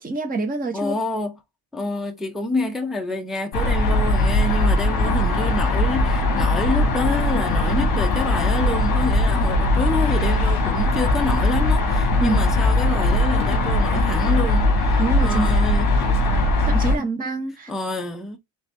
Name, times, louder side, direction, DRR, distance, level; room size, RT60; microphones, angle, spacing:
voice 1, 0.0-1.0 12.2-12.4 15.0-15.7 16.7-17.7, right 3 dB, 20° right, 0.8 m, -26 dB
voice 2, 0.7-1.4 1.7-15.9 17.7-18.4, left 2 dB, ahead, 0.3 m, -27 dB
sound 1, 3.5-17.0, left 2 dB, 50° left, 1.3 m, -20 dB
4.1 x 3.5 x 3.3 m
cardioid pair, 170°, 47 cm